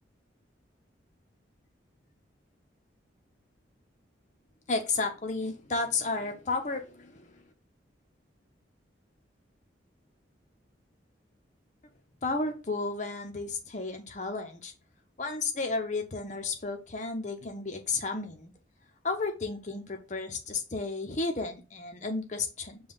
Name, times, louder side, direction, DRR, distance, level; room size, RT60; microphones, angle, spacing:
voice 1, 4.7-7.5 12.2-14.7 15.2-18.5 19.0-22.8, left 3 dB, 40° left, 5 dB, 0.7 m, -33 dB
5.3 x 2.3 x 3.8 m, 0.32 s
head